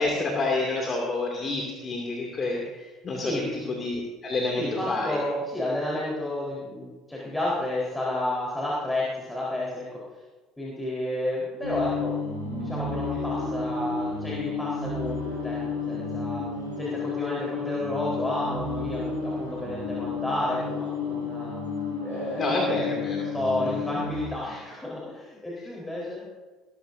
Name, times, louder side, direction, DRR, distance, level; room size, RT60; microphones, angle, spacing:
voice 1, 0.0-5.2 22.4-23.3 23.6-23.9 25.6-25.7, left 2 dB, 35° left, 0 dB, 2.5 m, -29 dB
voice 2, 3.2-3.5 4.5-10.0 10.6-12.1 12.6-16.4 16.8-21.5 22.0-22.7 23.3-26.2, left 1 dB, 10° left, -6 dB, 4.2 m, -31 dB
sound 1, 11.6-24.3, left 4 dB, 90° right, 4.6 m, -31 dB
20.0 x 13.0 x 2.7 m, 1.3 s
figure-of-eight pair, 60°, 0 cm